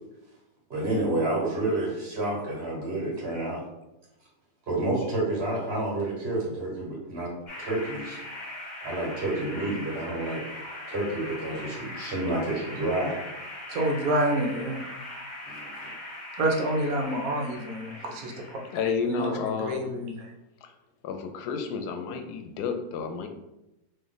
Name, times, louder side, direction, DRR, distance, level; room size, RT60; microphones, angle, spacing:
voice 1, 0.7-3.6 4.7-7.3 7.6-8.2 8.8-10.4 10.9-13.2 15.4-15.9, right 2 dB, 40° right, -3 dB, 1.6 m, -29 dB
sound 1, 7.5-18.9, left 1 dB, 35° left, 0.8 m, -40 dB
voice 2, 13.7-14.9 16.3-18.6 19.1-20.3, right 1 dB, 70° right, 2 dB, 1.1 m, -28 dB
voice 3, 18.7-19.9 20.6-20.7 21.0-23.3, left 5 dB, 80° left, 5 dB, 1.1 m, -31 dB
3.2 x 2.7 x 3.9 m, 0.92 s
omnidirectional pair, 1.7 m